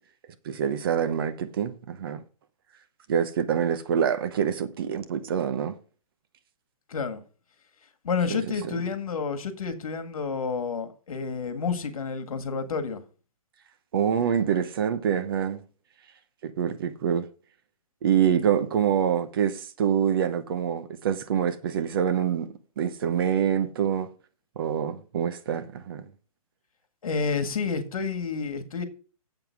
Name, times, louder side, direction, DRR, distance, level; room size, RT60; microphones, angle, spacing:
voice 1, 0.4-2.2 3.1-5.7 8.3-8.4 8.7-8.8 13.9-15.6 16.4-17.3 18.0-22.5 22.8-24.1 24.6-26.0, right 8 dB, 40° right, 0.8 m, -26 dB
voice 2, 6.9-7.2 8.0-13.0 27.0-28.8, left 5 dB, 70° left, 1.7 m, -29 dB
7.8 x 7.0 x 4.6 m
hypercardioid pair, 160°, 19 cm